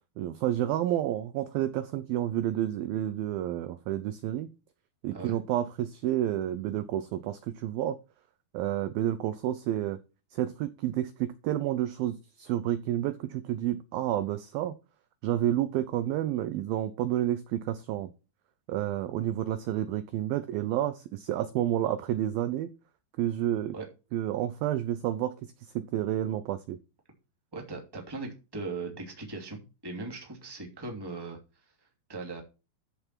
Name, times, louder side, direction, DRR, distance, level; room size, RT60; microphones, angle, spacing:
voice 1, 0.2-4.5 5.0-8.0 8.5-10.0 10.3-14.7 15.2-18.1 18.7-22.7 23.2-23.7 24.1-26.8, right 12 dB, 85° right, 2.1 m, -30 dB
voice 2, 27.5-31.4 32.1-32.4, right 3 dB, 10° right, 1.7 m, -39 dB
13.5 x 5.7 x 4.6 m
omnidirectional pair, 5.1 m